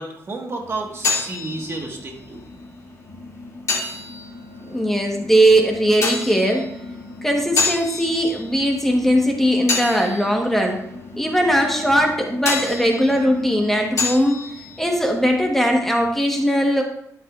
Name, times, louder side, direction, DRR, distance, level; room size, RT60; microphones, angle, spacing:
voice 1, 0.0-2.4, right 2 dB, 45° right, 1 dB, 1.5 m, -31 dB
sound 1, 0.6-16.2, left 4 dB, 50° left, 2.4 m, -30 dB
voice 2, 4.7-6.7 7.2-10.8 11.2-14.4 14.8-16.8, equal, 5° left, 1 dB, 1.1 m, -19 dB
12.5 x 6.7 x 2.4 m, 0.76 s
wide cardioid pair, 115°, 6 cm